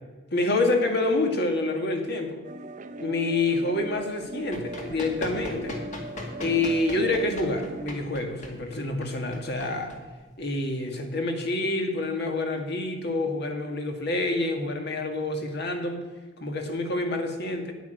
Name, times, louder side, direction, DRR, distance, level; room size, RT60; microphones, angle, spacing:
voice 1, 0.3-2.4 3.0-5.8 6.4-10.0 10.4-16.1 16.4-17.7, left 2 dB, 55° left, 4 dB, 1.9 m, -27 dB
sound 1, 2.4-7.9, right 1 dB, 40° right, 0.6 m, -40 dB
Run, 4.3-10.6, left 1 dB, 40° left, 2.1 m, -39 dB
9.7 x 9.2 x 6.5 m, 1.3 s
head